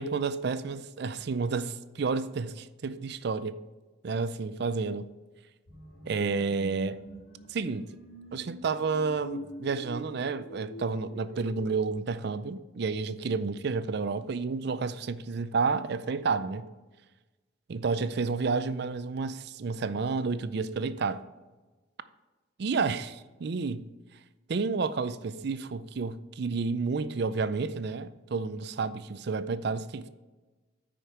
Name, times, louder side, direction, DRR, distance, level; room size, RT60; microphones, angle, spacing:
voice 1, 0.0-3.6 4.0-5.1 6.1-7.0 7.5-7.9 8.3-16.7 17.7-21.3 22.6-23.9 24.5-30.1, right 4 dB, 55° right, 0.4 m, -30 dB
sound 1, 5.7-11.7, equal, 85° left, 1.9 m, -45 dB
9.2 x 5.1 x 4.4 m
head